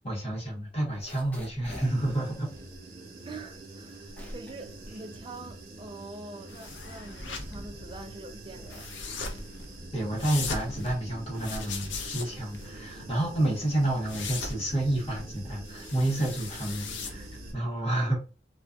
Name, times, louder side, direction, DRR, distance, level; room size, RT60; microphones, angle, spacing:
voice 1, 0.0-2.5 9.9-18.2, right 1 dB, 35° left, 1.2 m, -29 dB
sound 1, 0.9-6.1 6.4-7.9 8.3-17.1, equal, 10° left, 0.7 m, -49 dB
Human voice / Buzz, 1.8-17.5, right 2 dB, 55° right, 0.8 m, -46 dB
voice 2, 3.3-8.9 17.5-17.7, right 2 dB, 25° right, 0.5 m, -44 dB
sound 2, 6.5-17.6, left 4 dB, 90° left, 0.5 m, -40 dB
2.5 x 2.5 x 2.3 m
head